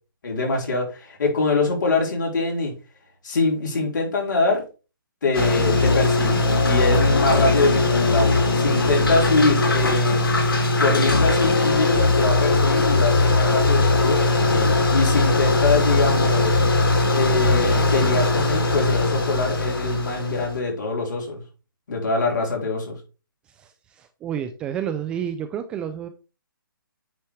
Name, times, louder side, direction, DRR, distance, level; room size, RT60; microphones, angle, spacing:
voice 1, 0.2-2.7 3.2-4.6 5.2-10.2 10.8-16.6 17.1-21.4 21.9-23.0, left 3 dB, 60° left, 0 dB, 4.3 m, -24 dB
sound 1, 5.3-20.6, left 2 dB, 85° left, 2.5 m, -20 dB
voice 2, 23.6-26.1, right 9 dB, 10° right, 10 dB, 0.3 m, -30 dB
9.1 x 4.3 x 4.7 m, 0.32 s
hypercardioid pair, 155°, 12 cm